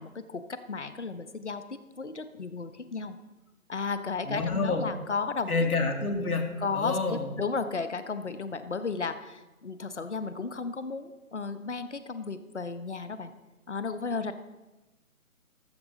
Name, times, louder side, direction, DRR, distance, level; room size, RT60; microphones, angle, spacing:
voice 1, 0.0-3.2 3.7-5.5 6.6-13.3 13.7-14.4, left 4 dB, 55° left, 11 dB, 0.9 m, -34 dB
voice 2, 4.3-4.9 5.5-7.3, left 3 dB, 85° left, 4 dB, 2.2 m, -28 dB
18.5 x 7.4 x 3.9 m, 1.1 s
hypercardioid pair, 175°, 43 cm